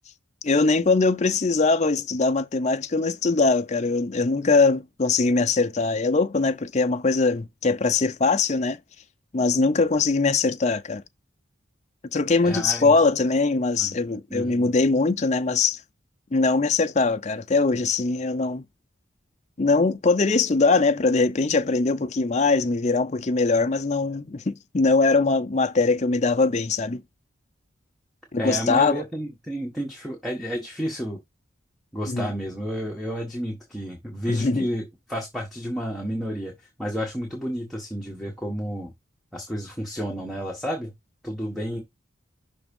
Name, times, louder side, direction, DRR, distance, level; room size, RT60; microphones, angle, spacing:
voice 1, 0.4-8.8 9.3-11.0 12.1-15.8 16.3-18.6 19.6-27.0 28.3-29.0 32.1-32.3 34.3-34.7, left 3 dB, 35° left, 0.5 m, -22 dB
voice 2, 12.4-12.9 13.8-13.9 14.3-14.7 28.4-31.2 31.9-36.5 36.8-38.9 39.3-40.9 41.2-41.8, equal, ahead, 1.3 m, -31 dB
6.0 x 3.5 x 5.3 m
head